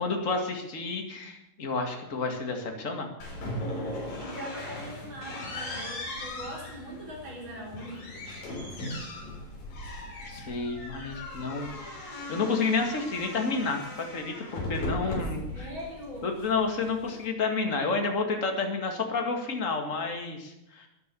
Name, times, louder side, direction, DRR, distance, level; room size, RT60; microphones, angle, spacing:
voice 1, 0.0-3.1 10.3-11.7 12.3-13.8 14.1-15.7 16.2-20.9, left 4 dB, 30° left, 3 dB, 1.7 m, -30 dB
sound 1, 3.2-17.3, left 1 dB, 70° left, 5.4 m, -38 dB
voice 2, 4.2-8.1 11.5-11.8 15.0-15.2 15.5-16.5, equal, 35° right, -3 dB, 4.7 m, -42 dB
13.5 x 11.0 x 6.9 m, 0.87 s
omnidirectional pair, 4.1 m